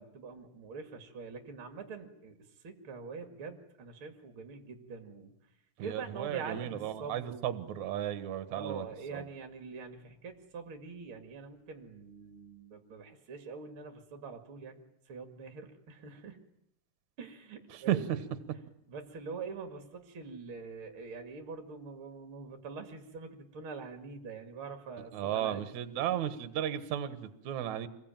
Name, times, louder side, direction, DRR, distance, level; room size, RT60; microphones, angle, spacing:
voice 1, 0.0-2.4 2.6-5.3 5.8-7.6 8.5-16.4 17.2-18.2 18.9-25.6, right 5 dB, 40° right, 5 dB, 2.0 m, -44 dB
voice 2, 5.8-8.9 9.1-9.2 17.7-18.2 25.1-27.9, right 11 dB, 60° right, 10 dB, 2.2 m, -34 dB
26.5 x 21.5 x 9.1 m, 0.81 s
omnidirectional pair, 5.0 m